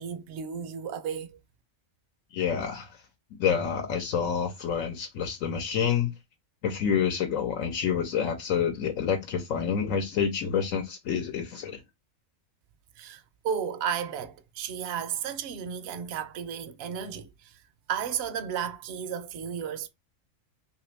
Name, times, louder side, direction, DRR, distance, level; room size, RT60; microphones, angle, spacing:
voice 1, 0.0-1.4 13.0-17.6 17.9-19.9, right 8 dB, 60° right, 0.7 m, -33 dB
voice 2, 2.3-2.9 3.3-6.1 6.6-11.8, left 7 dB, 75° left, 1.1 m, -28 dB
2.9 x 2.7 x 3.2 m
omnidirectional pair, 1.4 m